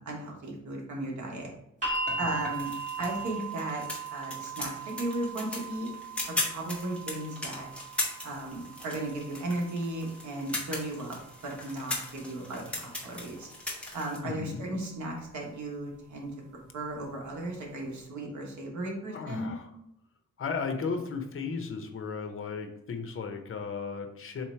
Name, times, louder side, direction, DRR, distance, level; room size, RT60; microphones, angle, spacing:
voice 1, 0.0-1.5 2.2-2.7 3.0-5.9 6.3-7.7 8.2-11.2 11.4-13.5 13.9-16.3 16.7-19.6, right 1 dB, 75° right, 0 dB, 1.2 m, -35 dB
sound 1, 1.8-13.9 15.0-15.1, right 4 dB, 25° right, 1.4 m, -40 dB
sound 2, 1.9-14.2, left 2 dB, 5° left, 1.0 m, -39 dB
voice 2, 14.2-14.6 19.1-19.7 20.4-24.4, left 5 dB, 45° left, 6 dB, 0.7 m, -35 dB
3.8 x 3.0 x 4.3 m, 0.78 s
wide cardioid pair, 140°, 29 cm